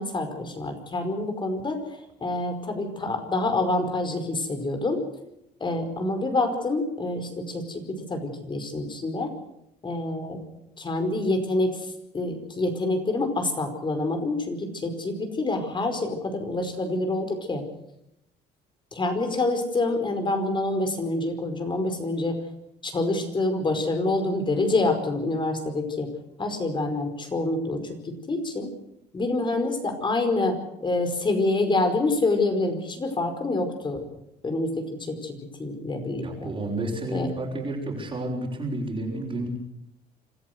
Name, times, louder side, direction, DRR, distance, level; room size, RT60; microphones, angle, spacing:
voice 1, 0.0-5.0 5.6-9.3 9.8-10.4 10.8-17.6 18.9-22.4 22.8-26.1 26.4-28.7 29.1-34.0 34.4-36.5 37.1-37.3, left 2 dB, 30° left, 7 dB, 5.0 m, -27 dB
voice 2, 36.2-39.5, right 1 dB, 30° right, -3 dB, 6.1 m, -30 dB
26.5 x 14.5 x 8.0 m, 0.80 s
cardioid pair, 110°, 17 cm